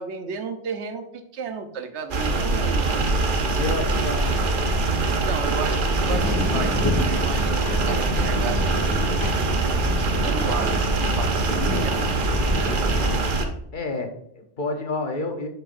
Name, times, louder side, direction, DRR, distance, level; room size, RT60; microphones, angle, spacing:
voice 1, 0.0-2.9 3.4-3.8 5.2-9.0 10.0-10.7 11.2-12.1, right 5 dB, 70° right, 7 dB, 1.1 m, -33 dB
sound 1, 2.1-13.5, right 3 dB, 50° right, 0.9 m, -23 dB
voice 2, 3.6-4.8 13.1-13.2 13.7-15.5, left 3 dB, 45° left, 4 dB, 0.9 m, -30 dB
sound 2, 6.0-13.1, left 2 dB, 20° left, 1.3 m, -29 dB
7.6 x 6.8 x 2.6 m, 0.75 s
omnidirectional pair, 1.2 m